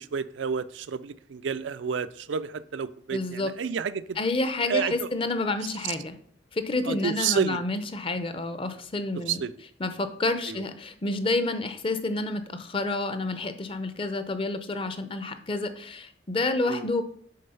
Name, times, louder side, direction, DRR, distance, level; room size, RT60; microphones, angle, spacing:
voice 1, 0.0-4.2 4.7-5.1 6.8-7.6 9.3-9.5 10.5-10.6 16.7-16.9, right 6 dB, 75° right, 14 dB, 0.4 m, -30 dB
voice 2, 3.1-3.5 4.2-6.2 6.5-9.4 9.8-17.0, left 2 dB, 30° left, 10 dB, 0.6 m, -29 dB
6.6 x 4.6 x 5.6 m, 0.62 s
head